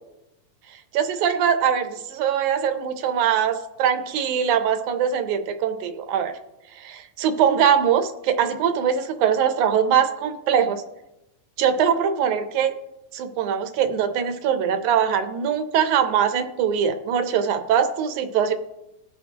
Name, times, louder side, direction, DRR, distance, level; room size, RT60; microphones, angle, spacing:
voice 1, 1.0-6.3 6.8-10.8 11.6-12.7 13.1-18.5, right 8 dB, 75° right, 8 dB, 2.2 m, -22 dB
20.0 x 7.5 x 2.9 m, 0.92 s
omnidirectional pair, 3.6 m